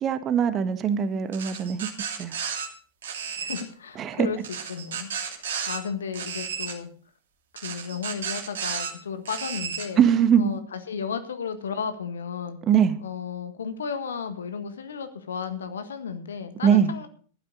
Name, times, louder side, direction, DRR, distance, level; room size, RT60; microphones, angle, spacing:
voice 1, 0.0-1.9 2.2-2.4 4.0-4.3 10.0-10.5 12.7-13.0 16.6-16.9, right 8 dB, 30° right, 11 dB, 1.4 m, -21 dB
sound 1, 1.3-2.7 3.0-3.6 4.4-5.8 6.1-6.7 7.6-8.9 9.2-9.9, right 7 dB, 60° right, 3.1 m, -33 dB
voice 2, 3.4-4.4 4.7-6.9 7.6-10.0 10.4-12.6 13.0-17.1, left 6 dB, 65° left, 9 dB, 1.6 m, -34 dB
14.5 x 12.0 x 4.0 m, 0.43 s
figure-of-eight pair, 90°, 0 cm